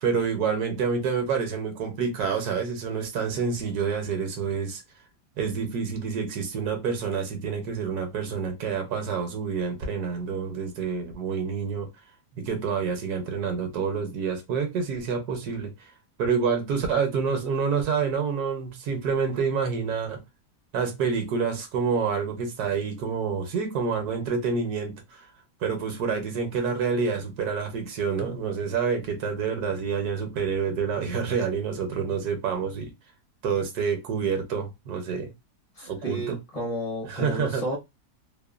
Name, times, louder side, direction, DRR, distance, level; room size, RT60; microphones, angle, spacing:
voice 1, 0.0-4.8 5.4-11.9 12.3-15.9 16.2-20.2 20.7-25.3 25.6-32.9 33.4-35.3 35.9-36.4 37.0-37.6, right 6 dB, 75° right, 1.2 m, -28 dB
voice 2, 35.8-37.8, equal, 35° left, 0.6 m, -32 dB
2.9 x 2.1 x 2.4 m
omnidirectional pair, 1.7 m